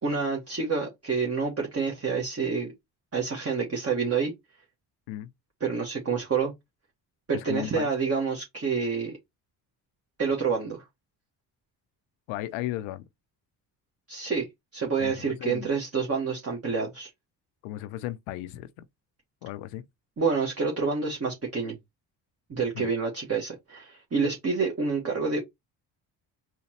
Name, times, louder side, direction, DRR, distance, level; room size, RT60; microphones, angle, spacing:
voice 1, 0.0-2.7 3.1-4.3 5.6-6.5 7.3-9.1 10.2-10.8 14.1-14.5 14.7-17.1 20.2-21.8 22.5-25.4, right 5 dB, 30° right, 1.4 m, -28 dB
voice 2, 7.3-7.9 12.3-13.0 15.0-15.1 15.4-15.7 17.6-18.7 19.4-19.8 22.7-22.9, left 14 dB, 75° left, 0.6 m, -35 dB
4.2 x 3.0 x 2.9 m
hypercardioid pair, 55°, 49 cm